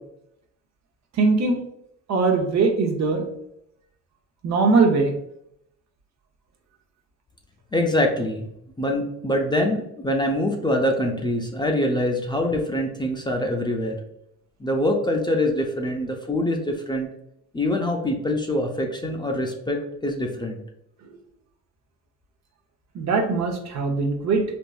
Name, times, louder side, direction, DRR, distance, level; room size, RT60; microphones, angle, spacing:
voice 1, 1.1-1.6 2.1-3.3 4.4-5.1 22.9-24.4, right 4 dB, 60° right, 3 dB, 0.7 m, -21 dB
voice 2, 7.7-8.5 8.8-14.0 14.6-17.1 17.5-20.6, left 1 dB, 15° left, 1 dB, 0.5 m, -24 dB
3.5 x 2.5 x 2.3 m, 0.76 s
cardioid pair, 90°, 31 cm